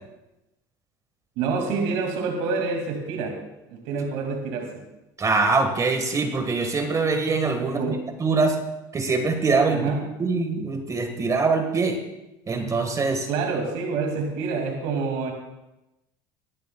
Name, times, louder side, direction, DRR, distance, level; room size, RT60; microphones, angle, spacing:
voice 1, 1.4-3.3 3.7-4.8 7.6-8.0 9.7-10.0 13.3-15.3, right 4 dB, 75° right, 2 dB, 2.1 m, -27 dB
voice 2, 5.2-7.9 8.2-8.6 8.9-9.8 10.2-12.0 12.5-13.3, right 4 dB, 30° right, 6 dB, 1.4 m, -23 dB
21.0 x 11.0 x 2.2 m, 0.96 s
supercardioid pair, 95°, 12 cm